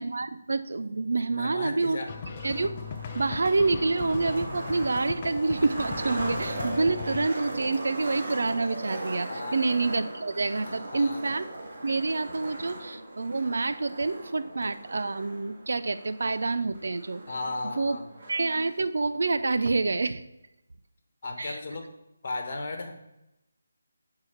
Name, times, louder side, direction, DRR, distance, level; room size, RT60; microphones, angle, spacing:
voice 1, 0.0-2.0 2.4-2.7 3.1-11.5 11.8-17.2 17.8-18.0 18.3-20.2 21.4-21.6, right 3 dB, 70° right, 12 dB, 0.5 m, -27 dB
voice 2, 1.3-2.1 9.3-9.6 10.9-11.2 17.3-18.0 21.2-21.8 22.2-22.9, left 2 dB, 50° left, 5 dB, 1.3 m, -35 dB
Skateboard, 1.7-18.7, right 1 dB, 50° right, 1.7 m, -39 dB
sound 1, 2.1-7.3, left 6 dB, 30° left, 0.5 m, -38 dB
6.3 x 4.7 x 5.8 m, 0.91 s
figure-of-eight pair, 160°, 0 cm